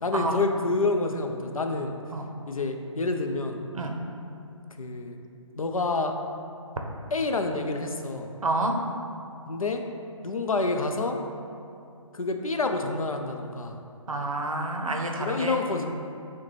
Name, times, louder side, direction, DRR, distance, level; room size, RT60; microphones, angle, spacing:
voice 1, 0.0-1.9 2.5-3.6 4.8-5.2 5.6-6.2 7.1-8.3 9.5-9.8 10.2-11.2 12.1-13.8 15.2-15.9, left 3 dB, 85° left, 5 dB, 0.4 m, -28 dB
voice 2, 8.4-8.7 14.1-15.6, right 2 dB, 80° right, 2 dB, 0.6 m, -28 dB
6.4 x 2.1 x 3.2 m, 2.6 s
figure-of-eight pair, 145°, 17 cm